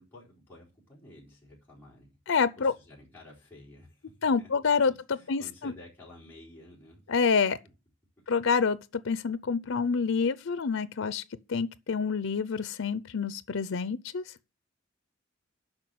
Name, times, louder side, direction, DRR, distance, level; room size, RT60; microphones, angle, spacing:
voice 1, 0.0-2.2 2.6-4.5 4.9-7.0, left 1 dB, 10° left, 4.4 m, -52 dB
voice 2, 2.3-2.7 4.2-5.7 7.1-7.6 8.3-11.2 11.5-14.3, left 5 dB, 85° left, 0.6 m, -27 dB
8.9 x 5.8 x 7.7 m
head